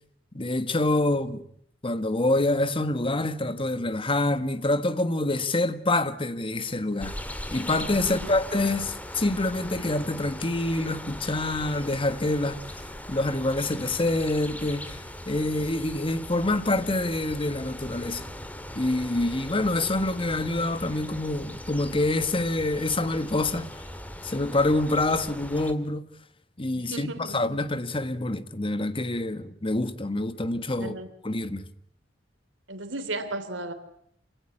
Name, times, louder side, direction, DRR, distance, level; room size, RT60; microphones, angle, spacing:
voice 1, 0.3-1.4 1.8-7.2 7.5-12.6 13.1-18.3 18.7-23.7 24.2-26.1 26.6-30.9 31.2-31.7, left 2 dB, 30° left, 1.4 m, -26 dB
sound 1, 7.0-25.7, left 1 dB, 10° left, 2.1 m, -39 dB
voice 2, 8.0-8.4 26.7-27.4 30.7-31.1 32.7-33.7, right 2 dB, 90° right, 3.0 m, -35 dB
27.5 x 17.5 x 9.8 m
head